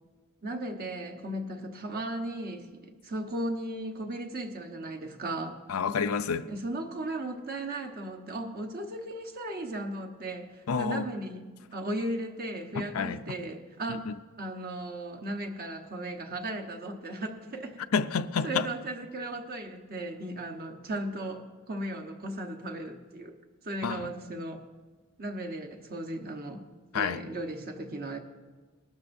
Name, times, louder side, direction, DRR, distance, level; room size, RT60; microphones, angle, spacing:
voice 1, 0.4-5.6 6.5-14.1 14.4-17.8 18.4-23.4 23.6-24.6 25.2-26.6 26.9-28.2, right 1 dB, 45° right, 1.1 m, -36 dB
voice 2, 5.7-6.5 10.7-11.1 12.8-13.2 13.9-14.1 17.9-18.7 23.8-24.1 26.9-27.2, left 6 dB, 85° left, 0.5 m, -29 dB
20.0 x 12.5 x 2.7 m
head